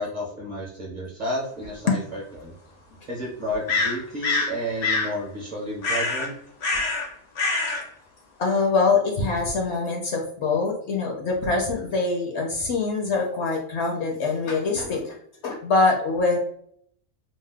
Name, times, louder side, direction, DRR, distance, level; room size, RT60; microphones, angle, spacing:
voice 1, 0.0-2.5 3.1-6.3, equal, 40° right, -4 dB, 0.7 m, -31 dB
sound 1, 1.6-1.7 3.7-4.5 4.8-5.1 5.8-6.3 6.6-7.1 7.4-7.8, left 3 dB, 85° left, 1.2 m, -24 dB
voice 2, 8.4-15.2 15.4-16.4, left 3 dB, 65° left, 1 dB, 0.7 m, -24 dB
2.7 x 2.0 x 3.3 m, 0.66 s
omnidirectional pair, 1.4 m